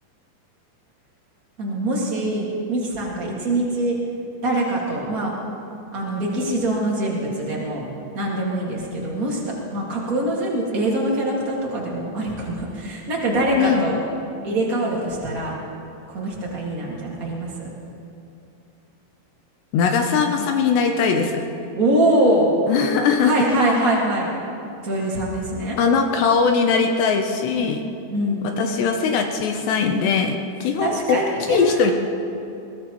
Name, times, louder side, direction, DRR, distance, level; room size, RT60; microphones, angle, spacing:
voice 1, 1.6-4.0 4.4-5.3 5.9-7.9 8.1-14.0 14.4-15.6 16.1-17.7 21.8-22.5 23.2-24.3 24.8-25.8 27.5-27.7 28.1-28.4 30.8-31.9, right 1 dB, 75° right, -4 dB, 0.8 m, -23 dB
voice 2, 13.6-13.9 19.7-21.5 22.7-23.3 25.8-27.8 28.4-31.2 31.5-31.9, left 5 dB, 75° left, 4 dB, 2.8 m, -20 dB
22.5 x 19.0 x 3.0 m, 2.7 s
omnidirectional pair, 5.2 m